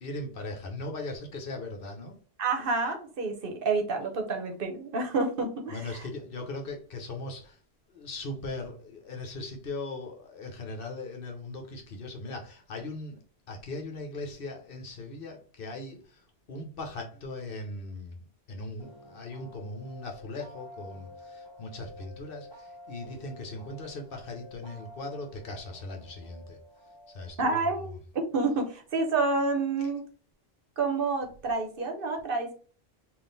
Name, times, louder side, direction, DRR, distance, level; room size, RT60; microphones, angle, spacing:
voice 1, 0.0-2.2 5.7-7.6 7.9-13.2 13.5-16.2 16.5-26.6 27.1-27.7 29.8-29.9, left 2 dB, 65° left, 1.0 m, -39 dB
voice 2, 2.4-6.1 27.4-30.0 30.8-32.5, right 3 dB, 65° right, 0.9 m, -29 dB
sound 1, 18.8-27.3, left 1 dB, 25° left, 1.2 m, -50 dB
3.7 x 2.5 x 3.8 m
omnidirectional pair, 1.0 m